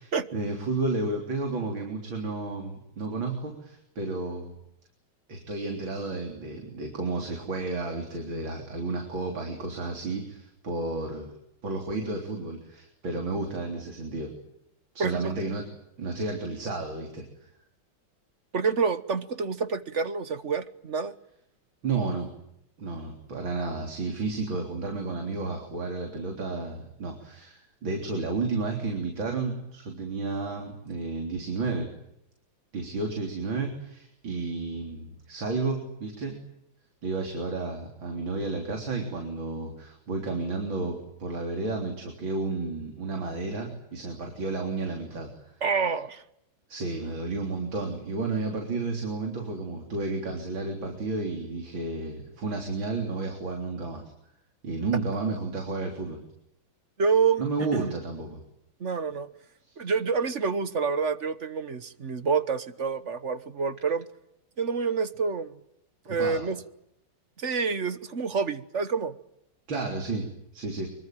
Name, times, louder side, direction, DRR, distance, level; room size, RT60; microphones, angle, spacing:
voice 1, 0.3-4.5 5.3-11.3 11.6-14.3 14.9-15.6 16.0-17.5 21.8-22.3 22.8-31.9 32.7-36.4 37.0-45.5 46.7-54.0 54.6-56.2 57.4-58.4 59.6-59.8 66.1-66.4 69.7-70.3 70.5-70.9, right 3 dB, 70° right, 4.3 m, -32 dB
voice 2, 15.0-15.3 18.5-21.1 45.6-46.2 57.0-57.4 57.7-57.9 58.8-59.3 59.8-64.1 64.6-65.6 66.1-66.6 67.4-69.1, right 5 dB, 40° right, 1.3 m, -27 dB
25.0 x 24.0 x 9.1 m
omnidirectional pair, 2.2 m